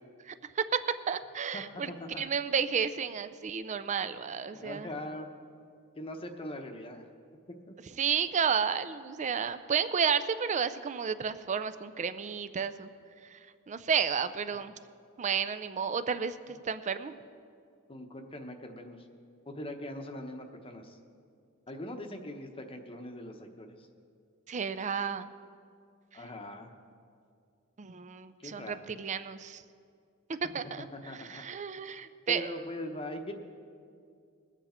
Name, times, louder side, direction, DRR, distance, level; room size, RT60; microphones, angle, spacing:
voice 1, 0.3-1.9 2.2-4.9 8.0-12.9 13.3-13.4 13.7-14.7 15.2-17.1 24.5-25.3 27.8-29.6 30.3-30.9 31.2-32.5, right 6 dB, 35° right, 12 dB, 0.4 m, -32 dB
voice 2, 1.5-2.2 4.5-5.3 6.0-7.0 7.7-7.8 17.9-19.0 19.5-21.0 21.7-23.9 26.1-26.7 28.4-28.9 30.9-31.4 32.3-33.3, left 1 dB, 25° left, 5 dB, 0.9 m, -41 dB
21.0 x 8.1 x 4.3 m, 2.3 s
head